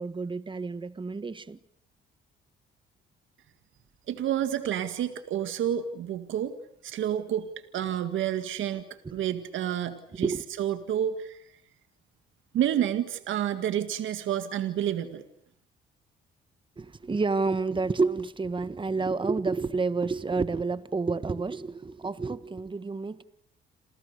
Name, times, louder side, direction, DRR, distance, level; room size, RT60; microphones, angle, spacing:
voice 1, 0.0-1.6 9.0-9.1 10.2-10.4 16.8-23.2, right 4 dB, 25° right, 1.4 m, -29 dB
voice 2, 4.1-6.5 6.8-7.5 7.7-8.9 9.1-10.3 10.6-11.4 12.5-15.2, right 10 dB, 75° right, 2.0 m, -29 dB
28.5 x 28.0 x 6.8 m
cardioid pair, 90°, 20 cm